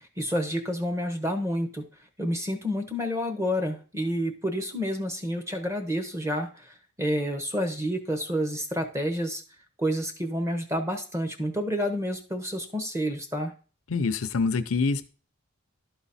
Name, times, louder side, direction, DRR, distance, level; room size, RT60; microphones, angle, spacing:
voice 1, 0.0-1.8 2.2-9.4 9.8-13.5, equal, 15° right, 7 dB, 0.9 m, -29 dB
voice 2, 13.9-15.1, left 4 dB, 75° left, 11 dB, 0.6 m, -25 dB
11.5 x 4.0 x 4.1 m, 0.37 s
head